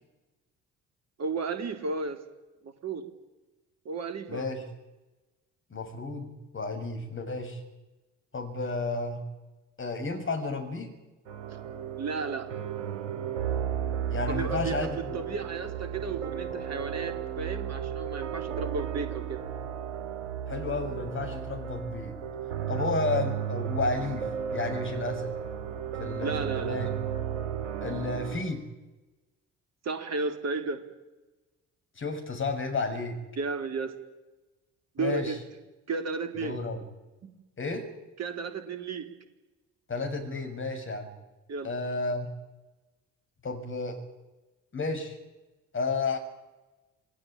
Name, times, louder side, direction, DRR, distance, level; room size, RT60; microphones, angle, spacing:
voice 1, 1.2-2.2 2.6-3.0 3.9-4.5 11.5-11.6 12.0-12.5 14.3-19.4 22.7-22.9 26.2-26.8 29.8-30.8 33.4-33.9 35.0-35.4 35.9-36.6 37.2-37.3 38.2-39.1 41.5-41.7, right 4 dB, 45° right, 8 dB, 3.8 m, -33 dB
voice 2, 4.3-4.6 5.7-7.6 8.3-9.2 9.8-11.0 14.1-15.2 20.5-22.1 22.7-25.3 26.0-26.9 27.8-28.6 32.0-33.2 35.0-35.3 36.4-36.8 37.6-37.9 39.9-41.1 41.6-42.3 43.4-44.0 44.7-45.2 45.7-46.2, left 3 dB, 30° left, 4 dB, 6.8 m, -32 dB
sound 1, 11.3-28.4, right 9 dB, 75° right, 4.9 m, -34 dB
27.5 x 18.5 x 9.0 m, 1.1 s
figure-of-eight pair, 50°, 37 cm